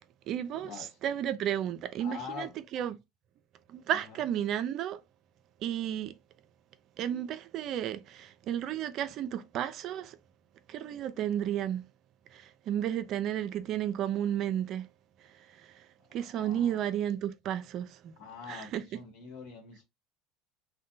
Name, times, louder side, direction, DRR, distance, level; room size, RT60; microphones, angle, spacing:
voice 1, 0.3-3.0 3.7-5.0 5.6-6.1 7.0-10.2 10.7-11.9 12.3-14.9 15.2-18.1 18.5-18.8, right 10 dB, 55° right, 0.3 m, -33 dB
voice 2, 2.0-2.5 16.2-16.8 18.2-19.8, left 6 dB, 70° left, 1.1 m, -44 dB
2.6 x 2.1 x 2.5 m
hypercardioid pair, 85°, 0 cm